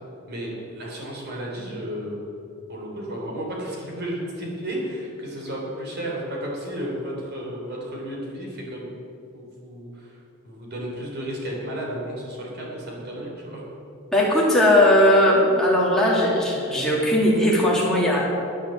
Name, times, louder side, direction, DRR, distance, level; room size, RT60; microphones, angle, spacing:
voice 1, 0.3-2.2 2.7-8.9 9.3-10.2 10.4-13.6, right 1 dB, 50° right, -2 dB, 3.6 m, -33 dB
voice 2, 14.1-18.2, left 1 dB, ahead, -5 dB, 2.7 m, -18 dB
10.5 x 9.8 x 7.8 m, 2.8 s
head